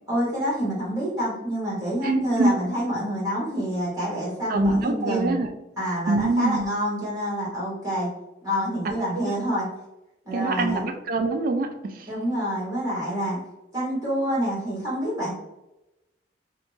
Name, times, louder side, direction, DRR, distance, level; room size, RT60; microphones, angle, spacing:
voice 1, 0.1-5.4 5.8-8.1 8.4-9.7 10.2-10.9 12.1-13.4 13.7-15.3, equal, 20° right, -8 dB, 1.0 m, -27 dB
voice 2, 2.0-2.5 4.5-5.5 6.1-6.7 9.1-9.4 10.3-12.1, right 2 dB, 50° right, 6 dB, 0.3 m, -24 dB
2.5 x 2.1 x 3.1 m, 0.96 s
head